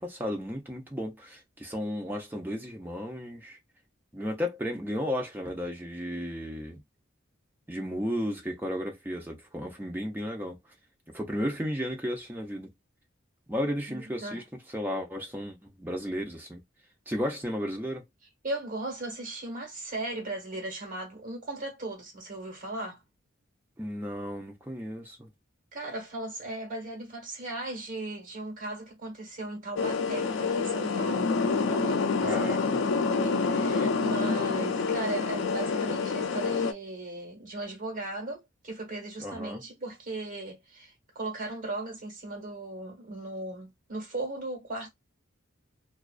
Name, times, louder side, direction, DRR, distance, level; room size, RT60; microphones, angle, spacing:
voice 1, 0.0-3.6 4.1-6.8 7.7-10.6 11.1-12.7 13.5-14.4 14.7-16.6 17.1-18.0 23.8-25.3 32.2-32.8 39.2-39.6, equal, 10° right, 0.6 m, -34 dB
voice 2, 13.9-14.4 18.4-23.0 25.7-44.9, right 2 dB, 40° right, 1.2 m, -37 dB
sound 1, 29.7-36.7, left 4 dB, 70° left, 0.4 m, -27 dB
2.3 x 2.3 x 2.3 m
head